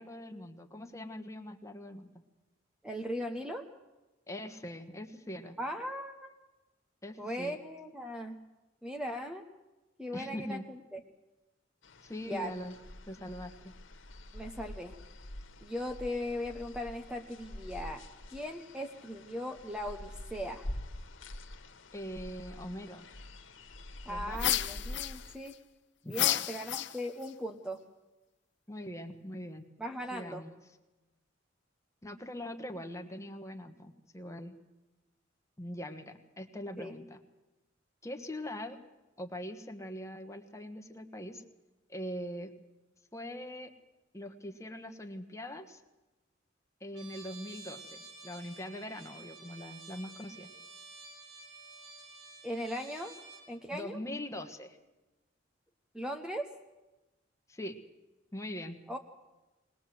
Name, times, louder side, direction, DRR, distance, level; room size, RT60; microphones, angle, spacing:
voice 1, 0.0-2.1 4.3-5.6 7.0-7.6 10.1-10.6 12.0-12.7 13.1-13.7 21.9-23.1 24.1-24.4 26.0-26.6 28.7-29.7 30.1-30.5 32.0-34.5 35.6-37.2 38.0-38.8 39.2-41.4 41.9-42.5 43.1-43.7 44.1-45.8 46.8-50.5 53.7-54.8 57.5-57.8 58.3-58.8, left 1 dB, 15° left, 6 dB, 1.4 m, -42 dB
voice 2, 2.8-3.7 5.6-6.3 7.2-8.4 8.8-9.4 10.0-11.0 12.3-12.5 14.3-14.9 15.6-18.0 18.3-20.7 24.1-25.5 26.1-27.8 29.8-30.4 36.8-36.9 52.4-53.2 53.5-54.0 55.9-56.5 58.9-59.0, equal, 5° right, 4 dB, 1.0 m, -38 dB
sound 1, 11.8-25.4, left 1 dB, 85° left, 1.5 m, -46 dB
sound 2, 24.4-25.5 26.1-27.3, left 13 dB, 65° left, 0.8 m, -31 dB
Trumpet, 46.9-53.5, right 3 dB, 85° right, 5.4 m, -51 dB
20.5 x 20.0 x 7.8 m, 1.1 s
head